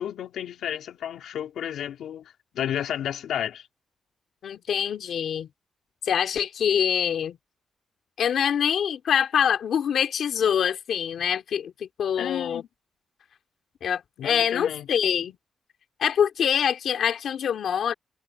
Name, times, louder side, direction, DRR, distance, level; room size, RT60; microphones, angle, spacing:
voice 1, 0.0-3.7 12.2-12.7 14.2-15.0, left 10 dB, 90° left, 3.3 m, -32 dB
voice 2, 4.4-5.5 6.0-7.4 8.2-12.6 13.8-15.4 16.0-17.9, left 8 dB, 60° left, 2.7 m, -25 dB
wide cardioid pair, 180°, 0 cm